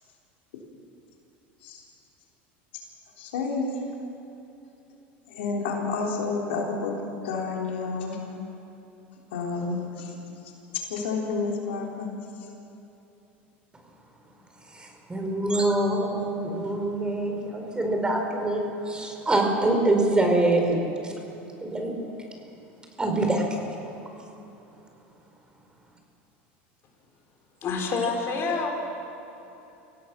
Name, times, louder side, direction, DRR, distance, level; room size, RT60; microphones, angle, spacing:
voice 1, 3.2-3.8 5.3-8.4 9.3-10.2 10.9-12.1, left 4 dB, 80° left, -1 dB, 3.9 m, -30 dB
voice 2, 14.7-20.8 21.0-21.1 21.6-21.9 23.0-23.4, right 2 dB, 15° right, 2 dB, 4.5 m, -25 dB
voice 3, 27.6-28.7, left 4 dB, 45° left, 2 dB, 4.6 m, -27 dB
25.5 x 17.0 x 6.2 m, 2.9 s
hypercardioid pair, 95°, 6 cm